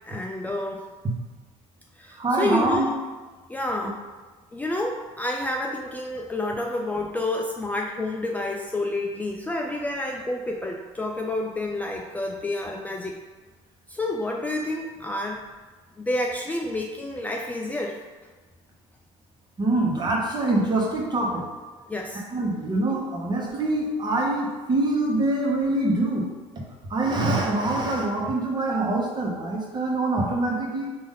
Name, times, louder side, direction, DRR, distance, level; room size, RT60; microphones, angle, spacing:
voice 1, 0.0-0.8 2.0-2.9 3.5-4.0 4.5-13.2 13.9-15.4 16.0-18.0 21.9-22.2, left 1 dB, 10° left, 0 dB, 0.3 m, -29 dB
voice 2, 2.2-2.9 3.8-3.9 19.6-21.4 22.3-26.3 26.6-26.7 26.9-30.9, right 2 dB, 35° right, -1 dB, 1.1 m, -24 dB
4.9 x 2.6 x 3.7 m, 1.3 s
supercardioid pair, 90°, 13 cm